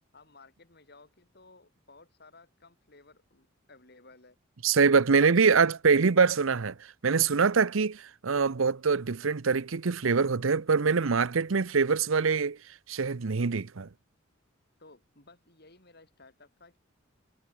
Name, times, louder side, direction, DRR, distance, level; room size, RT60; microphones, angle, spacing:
voice 1, 0.1-4.4 5.3-6.3 14.8-16.8, left 3 dB, 50° left, 6.1 m, -56 dB
voice 2, 4.6-12.6 12.9-13.9, right 5 dB, 80° right, 0.7 m, -24 dB
head